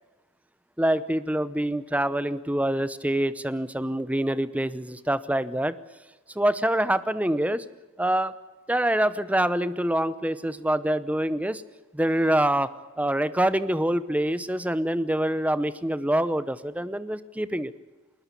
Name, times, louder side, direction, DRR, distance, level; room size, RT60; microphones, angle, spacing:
voice 1, 0.8-5.7 6.3-7.6 8.0-8.3 8.7-11.6 11.9-12.7 13.0-17.7, right 1 dB, 5° right, 15 dB, 0.7 m, -25 dB
21.0 x 20.5 x 8.2 m, 1.2 s
head